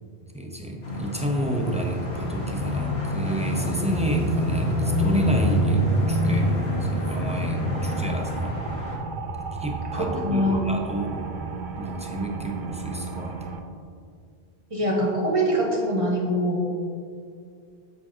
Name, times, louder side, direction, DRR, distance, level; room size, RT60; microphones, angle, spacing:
voice 1, 0.3-8.6 9.6-11.2 11.8-13.5, right 1 dB, 10° right, 1 dB, 0.6 m, -30 dB
sound 1, 0.8-8.9, equal, 85° left, 1.8 m, -26 dB
sound 2, 3.4-13.6, right 4 dB, 60° right, 0.7 m, -36 dB
voice 2, 9.9-10.7 14.7-16.7, equal, 35° right, -2 dB, 1.4 m, -24 dB
7.9 x 7.4 x 2.8 m, 2.3 s
omnidirectional pair, 1.0 m